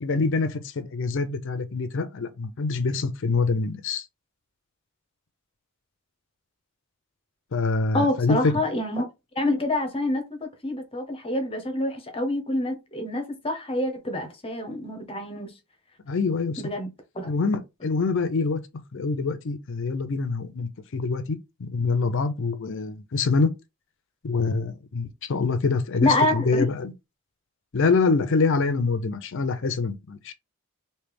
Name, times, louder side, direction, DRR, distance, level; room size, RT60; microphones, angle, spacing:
voice 1, 0.0-4.0 7.5-8.5 16.1-16.6 17.3-18.6 18.9-23.5 24.2-26.9 27.7-30.3, left 4 dB, 60° left, 0.5 m, -25 dB
voice 2, 7.9-9.1 9.3-15.5 16.6-16.9 17.1-17.3 26.0-26.6, left 1 dB, 25° left, 0.8 m, -27 dB
3.2 x 2.8 x 3.4 m
head